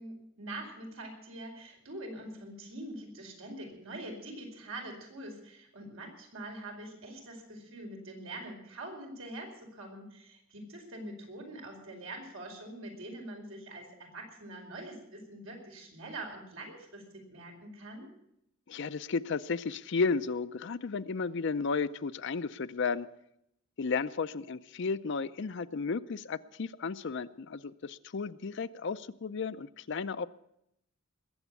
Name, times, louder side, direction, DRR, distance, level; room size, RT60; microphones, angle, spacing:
voice 1, 0.0-17.0 17.3-18.1, right 1 dB, 85° right, 1 dB, 4.9 m, -44 dB
voice 2, 18.7-23.1 23.8-30.3, left 4 dB, 60° left, 12 dB, 0.5 m, -33 dB
20.5 x 8.0 x 8.2 m, 0.77 s
head